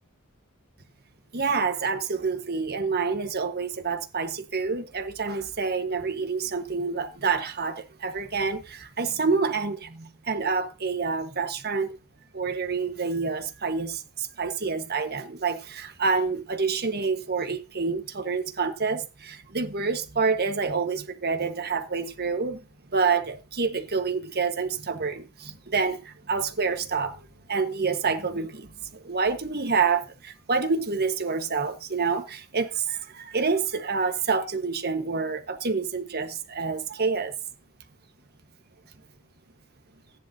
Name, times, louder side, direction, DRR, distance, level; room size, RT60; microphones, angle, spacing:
voice 1, 1.3-12.0 12.3-22.6 22.9-27.2 27.5-28.7 29.0-37.3, right 4 dB, 45° right, 1.5 m, -27 dB
14.5 x 10.5 x 2.8 m
head